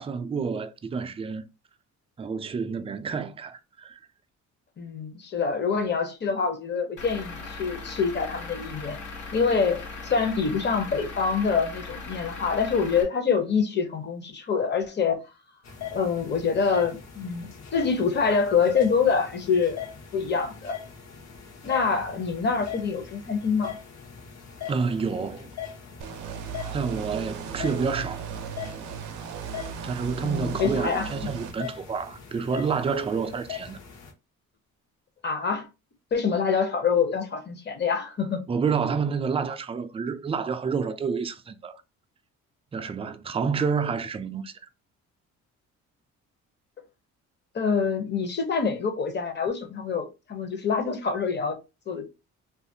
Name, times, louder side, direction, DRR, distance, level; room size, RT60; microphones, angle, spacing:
voice 1, 0.0-1.4 2.2-4.0 24.7-25.5 26.7-28.3 29.8-33.8 38.5-41.8 42.7-44.5, right 5 dB, 20° right, 0.3 m, -29 dB
voice 2, 4.8-9.0 9.3-15.2 15.9-19.8 20.1-20.8 21.6-23.8 30.2-31.1 35.2-35.7 36.1-38.4 47.5-51.6 51.9-52.0, left 5 dB, 35° left, 0.8 m, -26 dB
Truck / Idling, 7.0-13.0, left 3 dB, 80° left, 1.0 m, -39 dB
sound 1, 15.6-34.1, left 8 dB, 60° left, 0.9 m, -41 dB
sound 2, 26.0-31.5, right 7 dB, 85° right, 0.5 m, -36 dB
2.7 x 2.4 x 2.6 m
cardioid pair, 90°, 30 cm